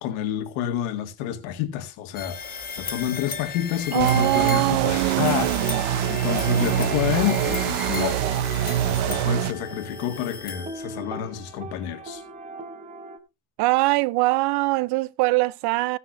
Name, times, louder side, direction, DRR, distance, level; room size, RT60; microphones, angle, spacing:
voice 1, 0.0-5.6 6.1-8.2 8.5-12.2, left 11 dB, 90° left, 2.1 m, -29 dB
sound 1, 2.2-11.2, left 6 dB, 20° left, 1.2 m, -35 dB
voice 2, 3.9-5.8 13.6-16.0, right 22 dB, 55° right, 0.5 m, -23 dB
sound 2, 4.0-9.5, right 11 dB, 80° right, 0.9 m, -24 dB
sound 3, 5.1-13.2, right 2 dB, 15° right, 0.9 m, -40 dB
15.5 x 9.7 x 2.6 m
cardioid pair, 175°, 47 cm